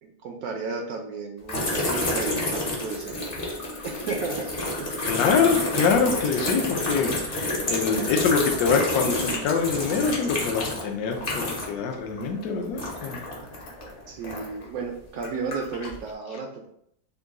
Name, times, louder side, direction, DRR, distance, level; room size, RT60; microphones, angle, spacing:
voice 1, 0.0-3.2 3.8-4.5 4.8-4.9 13.4-13.5 14.1-16.7, right 4 dB, 70° right, 2 dB, 0.9 m, -33 dB
sound 1, 1.5-11.9 12.1-14.6 15.2-16.0, left 1 dB, 45° left, 0.7 m, -29 dB
voice 2, 5.0-13.2, left 5 dB, 70° left, 2 dB, 1.0 m, -25 dB
3.7 x 2.3 x 3.6 m, 0.72 s
omnidirectional pair, 1.9 m